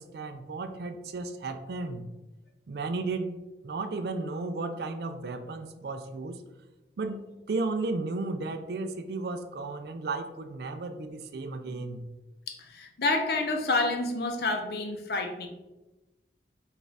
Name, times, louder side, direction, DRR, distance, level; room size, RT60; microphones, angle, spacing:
voice 1, 0.0-2.0 2.7-3.4 3.6-6.4 7.0-12.0, right 3 dB, 60° right, 7 dB, 0.4 m, -34 dB
voice 2, 12.5-15.5, left 2 dB, 55° left, 3 dB, 0.7 m, -29 dB
6.2 x 2.5 x 3.4 m, 1.1 s
head